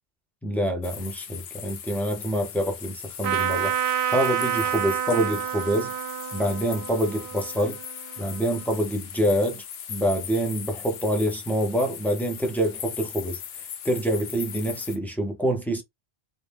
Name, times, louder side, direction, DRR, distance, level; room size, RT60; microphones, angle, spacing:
voice 1, 0.4-5.9 6.3-7.8 8.2-15.8, equal, 5° left, 0.3 m, -26 dB
sound 1, 0.8-15.0, left 8 dB, 70° left, 0.8 m, -39 dB
Trumpet, 3.2-8.7, right 10 dB, 70° right, 0.8 m, -29 dB
2.6 x 2.0 x 3.2 m
omnidirectional pair, 1.1 m